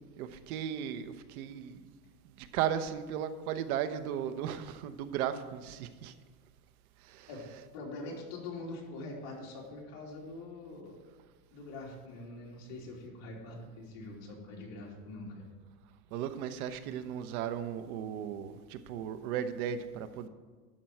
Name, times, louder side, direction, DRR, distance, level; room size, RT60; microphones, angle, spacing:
voice 1, 0.2-1.9 2.4-6.1 7.0-7.3 16.1-20.3, right 9 dB, 80° right, 11 dB, 1.0 m, -36 dB
voice 2, 7.7-11.0 11.5-15.5, left 2 dB, 55° left, -3 dB, 3.2 m, -44 dB
11.5 x 4.6 x 7.7 m, 1.4 s
supercardioid pair, 160°, 42 cm